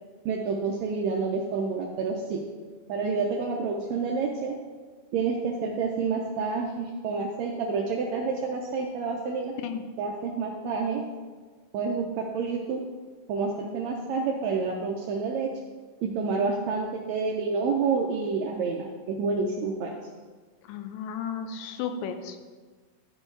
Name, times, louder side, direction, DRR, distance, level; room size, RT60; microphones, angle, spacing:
voice 1, 0.2-2.4 2.9-4.6 5.1-9.5 10.0-11.0 11.7-12.8 13.3-15.5 16.0-20.0, right 4 dB, 85° right, 1 dB, 1.6 m, -28 dB
voice 2, 20.7-22.4, left 7 dB, 90° left, 7 dB, 2.3 m, -34 dB
11.5 x 4.5 x 4.5 m, 1.4 s
omnidirectional pair, 3.8 m